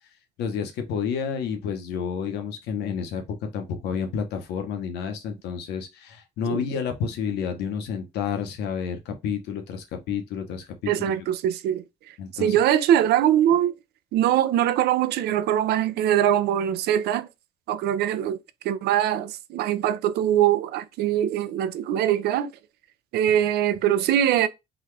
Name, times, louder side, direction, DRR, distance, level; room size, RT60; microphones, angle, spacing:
voice 1, 0.4-3.2 3.5-10.7 11.0-11.1 12.2-12.5, left 7 dB, 80° left, 0.9 m, -30 dB
voice 2, 10.9-12.1 12.4-13.7 14.1-17.3 17.7-18.4 18.6-22.5 23.1-24.5, right 11 dB, 70° right, 0.5 m, -22 dB
3.9 x 2.4 x 3.2 m
cardioid pair, 110°, 17 cm